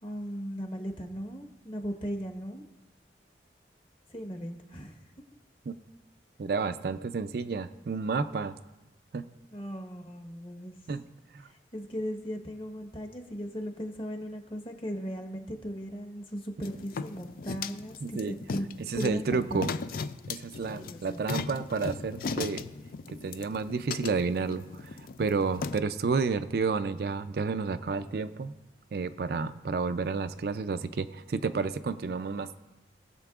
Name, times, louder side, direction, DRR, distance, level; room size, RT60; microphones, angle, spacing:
voice 1, 0.0-2.6 4.1-5.0 9.5-10.7 11.5-18.7 18.9-19.7 20.8-21.2, equal, 30° left, 4 dB, 1.1 m, -37 dB
voice 2, 6.4-8.5 9.1-9.2 10.9-11.0 18.0-18.3 18.9-19.7 20.3-22.6 23.2-24.9 25.2-28.5 28.9-32.6, right 4 dB, 60° right, 11 dB, 0.4 m, -30 dB
sound 1, 16.6-25.8, left 4 dB, 55° left, 0.4 m, -38 dB
20.0 x 7.4 x 2.4 m, 1.0 s
head